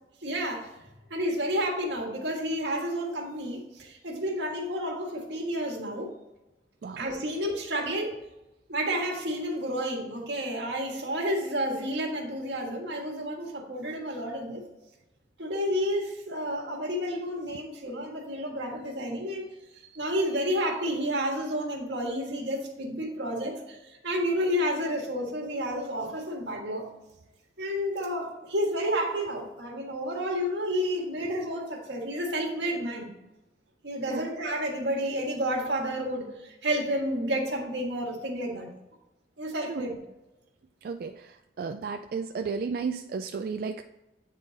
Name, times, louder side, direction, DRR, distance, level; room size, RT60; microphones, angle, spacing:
voice 1, 0.2-0.7 1.1-6.1 7.0-8.2 8.7-14.6 15.4-19.5 19.9-26.9 27.6-33.1 33.8-38.7 39.4-40.0, equal, 90° right, 0 dB, 1.6 m, -30 dB
voice 2, 40.8-43.8, right 5 dB, 55° right, 6 dB, 0.3 m, -33 dB
8.8 x 3.8 x 3.9 m, 0.98 s
head